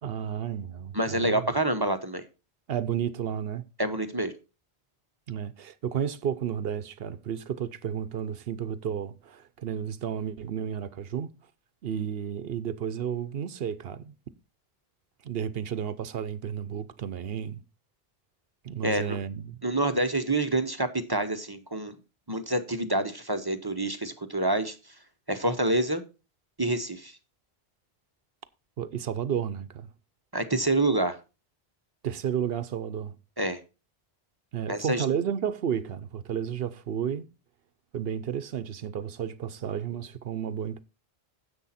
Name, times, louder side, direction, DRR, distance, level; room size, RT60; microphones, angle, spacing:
voice 1, 0.0-1.5 2.7-3.6 5.3-11.3 11.8-14.1 15.2-17.6 18.6-19.6 28.8-29.9 32.0-33.2 34.5-37.3 37.9-40.8, right 8 dB, 70° right, 0.9 m, -32 dB
voice 2, 0.9-2.2 3.8-4.3 18.8-19.2 19.6-21.9 22.3-24.8 25.3-26.0 26.6-27.1 30.3-31.2 33.4-33.6 34.7-35.0, right 2 dB, 25° right, 0.8 m, -27 dB
10.0 x 7.8 x 4.2 m
omnidirectional pair, 1.0 m